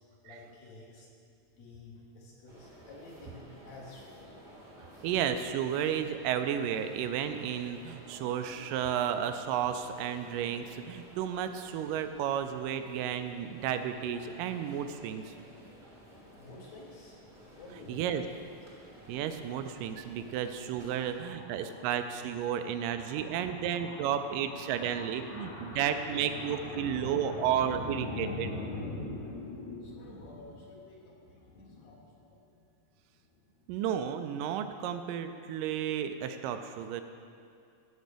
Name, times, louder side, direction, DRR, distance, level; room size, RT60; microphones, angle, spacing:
voice 1, 0.2-1.1 1.6-4.3 16.3-17.2 17.5-18.3 19.7-32.6 33.2-33.4, left 2 dB, 60° left, -2 dB, 2.3 m, -45 dB
sound 1, 2.5-21.2, equal, 30° right, 0.8 m, -53 dB
voice 2, 5.0-15.3 17.9-18.2 19.1-28.5 33.7-37.0, right 9 dB, 85° right, 8 dB, 2.2 m, -32 dB
15.0 x 6.2 x 5.2 m, 2.4 s
omnidirectional pair, 3.9 m